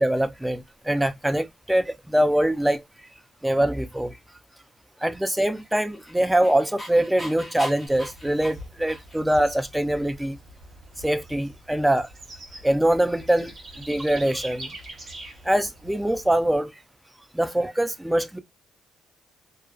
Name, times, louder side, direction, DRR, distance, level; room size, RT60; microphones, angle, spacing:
voice 1, 0.0-2.8 3.4-4.1 5.0-10.4 11.0-12.1 12.6-14.7 15.4-16.7 17.3-18.4, right 1 dB, 5° right, 0.4 m, -23 dB
Dog, 5.6-9.4, equal, 15° left, 0.9 m, -39 dB
Bird / Insect, 7.9-16.4, right 1 dB, 45° right, 0.9 m, -44 dB
2.3 x 2.3 x 2.3 m
cardioid pair, 90°, 0 cm